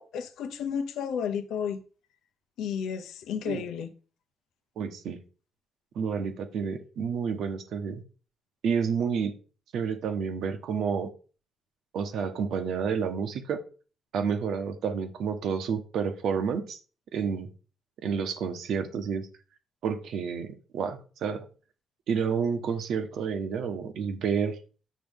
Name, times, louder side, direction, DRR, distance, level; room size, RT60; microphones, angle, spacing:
voice 1, 0.0-1.8 2.6-3.9, left 7 dB, 80° left, 0.8 m, -32 dB
voice 2, 4.8-5.2 5.9-8.0 8.6-9.3 9.7-11.1 11.9-13.6 14.1-16.8 17.1-17.5 18.0-19.3 19.8-21.5 22.1-24.5, right 6 dB, 75° right, 1.1 m, -30 dB
8.5 x 6.6 x 3.6 m
cardioid pair, 90°, 0 cm